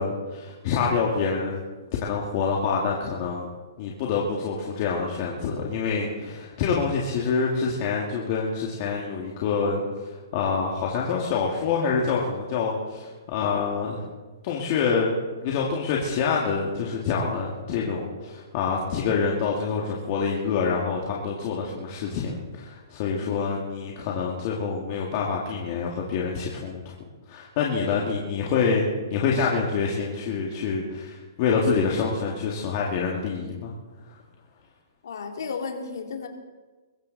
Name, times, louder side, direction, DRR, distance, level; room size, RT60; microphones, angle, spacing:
voice 1, 0.0-1.6 2.0-3.5 3.8-9.8 10.3-14.1 14.4-15.1 15.4-26.9 27.3-33.7, left 5 dB, 35° left, -2 dB, 2.2 m, -26 dB
voice 2, 23.2-23.6 35.0-36.3, left 5 dB, 70° left, 3 dB, 2.7 m, -35 dB
22.0 x 14.5 x 4.2 m, 1.3 s
hypercardioid pair, 160°, 2 cm